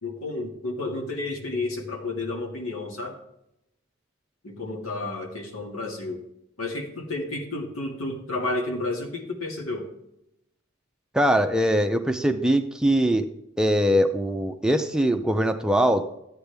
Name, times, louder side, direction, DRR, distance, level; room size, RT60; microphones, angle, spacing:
voice 1, 0.0-3.2 4.4-6.2 6.6-9.9, left 2 dB, 85° left, 1 dB, 2.1 m, -31 dB
voice 2, 11.1-13.3 13.6-16.1, equal, 5° right, 6 dB, 0.5 m, -22 dB
13.5 x 8.8 x 3.4 m, 0.83 s
head